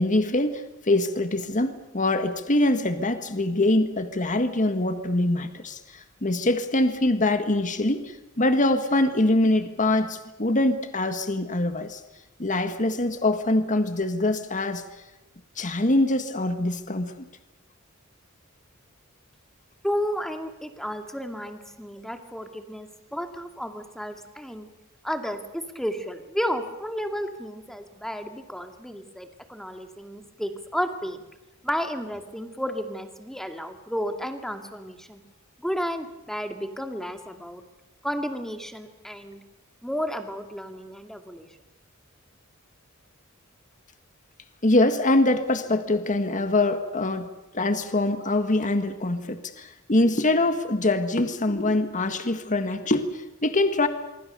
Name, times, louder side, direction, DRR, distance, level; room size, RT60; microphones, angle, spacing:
voice 1, 0.0-12.0 12.4-14.8 15.6-17.1 44.6-47.3 47.5-53.9, left 2 dB, 35° left, 8 dB, 1.7 m, -24 dB
voice 2, 19.8-24.7 25.0-31.2 31.6-35.2 35.6-37.6 38.0-39.4 39.8-41.5, equal, ahead, 6 dB, 2.3 m, -32 dB
25.5 x 24.0 x 6.9 m, 1.0 s
head